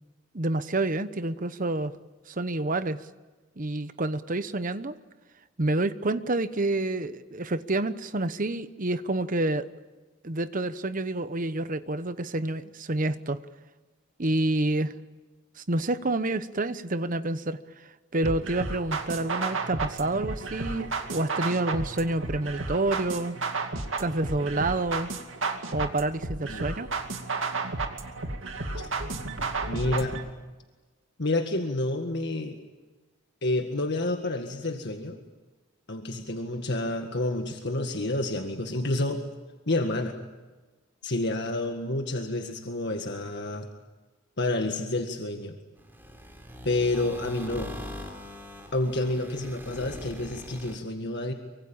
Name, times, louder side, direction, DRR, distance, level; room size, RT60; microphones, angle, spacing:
voice 1, 0.3-1.9 2.3-3.0 3.6-5.0 5.6-9.7 10.2-13.4 14.2-14.9 15.6-17.6 18.1-23.4 24.0-25.1 25.7-26.9, right 2 dB, 40° right, 13 dB, 1.0 m, -28 dB
sound 1, 18.2-30.2, right 3 dB, 65° right, 2.4 m, -32 dB
voice 2, 29.7-30.2 31.2-32.6 33.4-35.2 35.9-39.2 39.7-40.1 41.0-43.7 44.4-45.6 46.6-47.7 48.7-51.3, left 2 dB, 55° left, 4 dB, 1.8 m, -29 dB
sound 2, 45.8-50.8, left 1 dB, 10° right, 3.5 m, -41 dB
24.5 x 24.5 x 8.8 m, 1.2 s
head